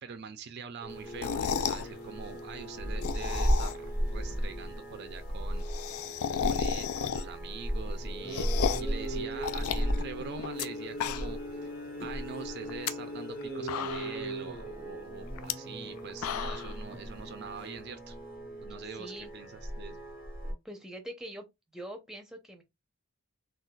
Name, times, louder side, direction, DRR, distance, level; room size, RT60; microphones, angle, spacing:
voice 1, 0.0-5.7 6.4-11.7 12.0-18.2 18.6-20.0, right 6 dB, 50° right, 0.4 m, -44 dB
sound 1, 0.8-20.5, equal, 40° left, 1.0 m, -35 dB
sound 2, 1.1-1.9 2.8-4.0 4.3-4.4 4.6-4.7 4.9-5.0 5.3-7.5 7.9-9.0 9.4-10.7 10.9-11.5 11.9-12.0 12.6-12.9 13.4-13.5 13.7-14.3 15.4-15.5 16.0-16.8, left 8 dB, 70° left, 0.3 m, -33 dB
voice 2, 18.9-19.3 20.6-21.4 21.7-22.6, right 1 dB, ahead, 0.6 m, -44 dB
3.9 x 2.3 x 2.2 m
head